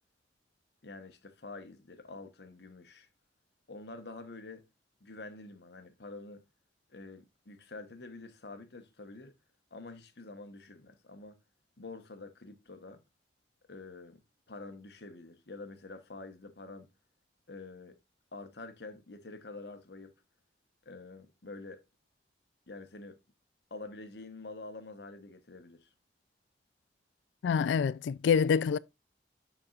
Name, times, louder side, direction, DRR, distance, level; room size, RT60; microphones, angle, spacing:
voice 1, 0.8-3.1 3.7-4.6 5.0-6.4 6.9-9.3 9.7-11.4 11.8-13.0 13.7-14.2 14.5-16.9 17.5-18.0 18.3-20.2 20.8-21.8 22.7-23.2 23.7-25.9, left 3 dB, 65° left, 1.0 m, -47 dB
voice 2, 27.4-28.8, left 6 dB, 85° left, 0.3 m, -26 dB
12.0 x 4.2 x 2.4 m
head